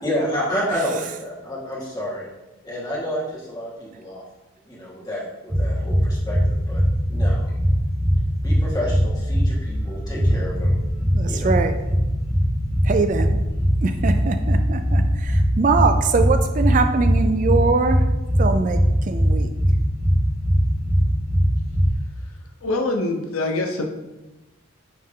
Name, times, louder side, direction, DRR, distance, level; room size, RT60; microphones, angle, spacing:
voice 1, 0.0-2.3 2.6-4.2 4.7-6.8 7.1-7.5 8.4-10.8 11.3-11.5, equal, 20° left, -6 dB, 1.7 m, -29 dB
sound 1, 5.5-21.9, equal, 15° right, 1.1 m, -21 dB
sound 2, 8.1-16.4, left 1 dB, 35° left, 0.9 m, -37 dB
voice 2, 11.1-11.8 12.8-13.4 13.8-18.0 18.4-19.5, right 4 dB, 40° right, 8 dB, 0.3 m, -22 dB
voice 3, 22.2-23.9, left 2 dB, 90° left, 3 dB, 0.8 m, -25 dB
9.0 x 3.2 x 3.7 m, 1.0 s
head